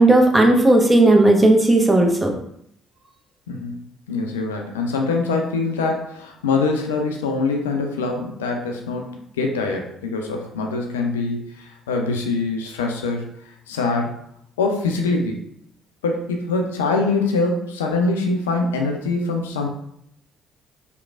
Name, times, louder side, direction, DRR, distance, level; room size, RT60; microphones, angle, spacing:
voice 1, 0.0-2.3, right 2 dB, 15° right, 2 dB, 0.6 m, -14 dB
voice 2, 3.5-3.8 4.1-13.3 13.7-14.1 14.6-15.4 16.0-19.7, left 3 dB, 80° left, 3 dB, 0.3 m, -24 dB
3.0 x 2.1 x 2.4 m, 0.71 s
figure-of-eight pair, 50°, 0 cm